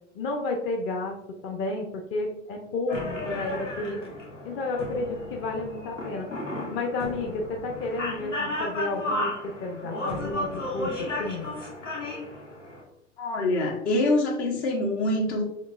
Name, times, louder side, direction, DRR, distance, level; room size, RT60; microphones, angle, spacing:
voice 1, 0.1-1.2 1.4-4.0 4.4-6.3 6.7-11.5, left 2 dB, 35° left, 1 dB, 0.8 m, -31 dB
sound 1, 2.9-12.8, left 1 dB, 90° left, 1.1 m, -34 dB
voice 2, 13.2-15.4, left 1 dB, 65° left, 0 dB, 1.4 m, -25 dB
6.4 x 2.9 x 2.4 m, 0.78 s
figure-of-eight pair, 90°, 36 cm